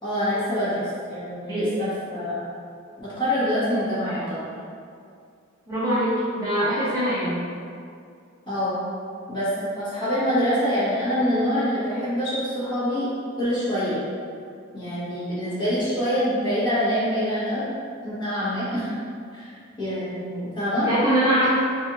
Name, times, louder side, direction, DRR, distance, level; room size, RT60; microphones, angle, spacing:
voice 1, 0.0-0.8 1.1-2.4 3.0-4.4 8.5-8.8 9.3-9.5 9.7-13.1 13.4-14.0 14.7-17.7 18.0-18.9 19.3-20.9, equal, 25° left, -12 dB, 1.5 m, -25 dB
voice 2, 1.5-1.9 5.7-7.4 20.8-21.5, equal, 20° right, -12 dB, 0.8 m, -23 dB
4.9 x 2.7 x 2.5 m, 2.3 s
head